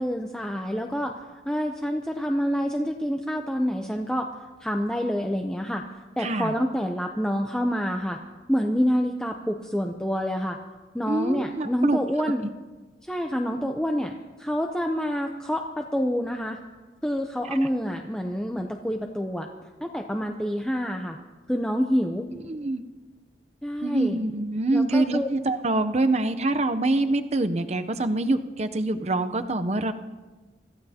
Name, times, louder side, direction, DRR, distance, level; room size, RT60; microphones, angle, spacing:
voice 1, 0.0-4.3 4.6-5.8 6.2-8.2 8.5-10.6 10.9-12.5 13.1-14.1 14.4-16.6 17.0-19.5 19.8-21.2 21.5-22.3 23.6-24.2 24.7-25.3, equal, 5° left, 3 dB, 0.5 m, -27 dB
voice 2, 6.2-6.5 11.1-12.0 22.4-22.8 23.8-29.9, right 2 dB, 35° right, 9 dB, 0.6 m, -25 dB
25.0 x 14.5 x 2.8 m, 1.3 s
head